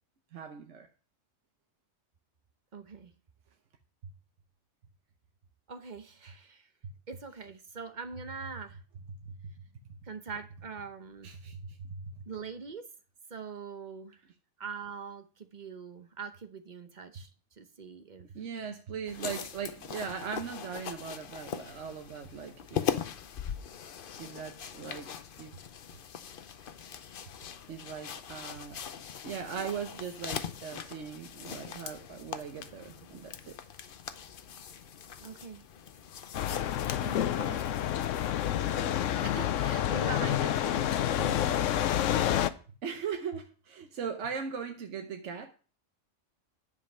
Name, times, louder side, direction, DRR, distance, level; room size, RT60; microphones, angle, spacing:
voice 1, 0.3-0.9 6.8-6.9 9.2-9.4 11.2-12.2 18.3-22.9 24.2-25.1 25.4-25.6 27.7-28.8 29.2-33.6 40.2-40.3 40.6-40.8 41.2-41.3 42.8-45.5, right 6 dB, 75° right, 1.2 m, -39 dB
voice 2, 2.7-3.1 5.7-6.7 7.1-8.8 10.0-11.3 12.3-12.8 13.3-14.2 14.6-17.3 17.6-18.3 35.2-35.6 37.0-37.8 38.2-38.5 38.7-42.2, right 5 dB, 40° right, 1.0 m, -43 dB
sound 1, 19.1-38.8, left 8 dB, 55° left, 0.8 m, -41 dB
sound 2, 36.3-42.5, left 11 dB, 90° left, 1.0 m, -28 dB
10.5 x 5.3 x 5.5 m
omnidirectional pair, 1.3 m